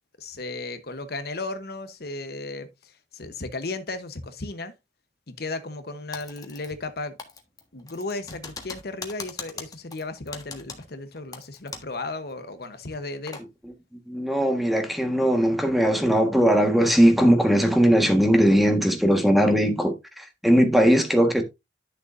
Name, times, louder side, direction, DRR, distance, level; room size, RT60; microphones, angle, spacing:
voice 1, 0.2-4.7 5.3-7.1 7.7-13.4, left 2 dB, 60° left, 1.0 m, -35 dB
Typing, 6.1-6.9 7.2-12.0 12.3-12.4 12.9-13.5, left 4 dB, 20° left, 1.5 m, -40 dB
voice 2, 14.1-21.4, equal, ahead, 1.4 m, -19 dB
11.0 x 6.8 x 2.6 m
head